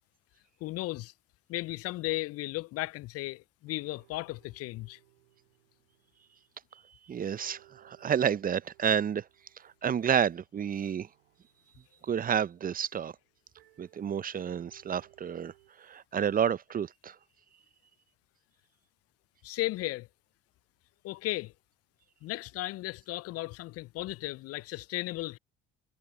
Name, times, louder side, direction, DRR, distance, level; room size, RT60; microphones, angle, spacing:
voice 1, 0.6-1.1 1.5-5.0 19.4-20.1 21.0-21.5 22.2-25.4, left 19 dB, 55° left, 0.5 m, -35 dB
sound 1, 3.4-3.5 3.7-6.9 7.1-15.7, right 18 dB, 85° right, 3.9 m, -65 dB
voice 2, 7.1-9.2 9.6-11.1 12.0-13.1 13.8-15.5 15.8-17.2, right 8 dB, 30° right, 0.6 m, -30 dB
hypercardioid pair, 60°, 30 cm